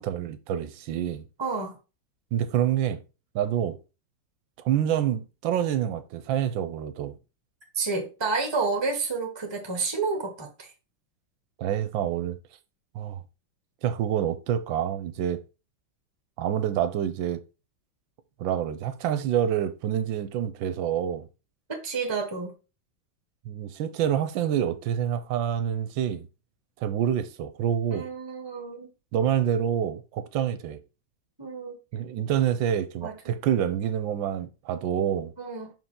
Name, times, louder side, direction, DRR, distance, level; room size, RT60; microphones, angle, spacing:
voice 1, 0.0-1.3 2.3-3.0 3.3-3.8 4.6-7.2 11.6-12.4 12.9-13.2 13.8-15.4 16.4-17.4 18.4-21.3 23.5-26.3 26.8-28.1 29.1-30.8 31.9-35.3, right 9 dB, 75° right, 1.3 m, -27 dB
voice 2, 1.4-1.8 7.7-10.7 21.7-22.5 27.9-28.9 31.4-31.8 33.0-33.3 35.4-35.7, right 4 dB, 20° right, 0.8 m, -30 dB
5.7 x 4.6 x 3.7 m
omnidirectional pair, 2.3 m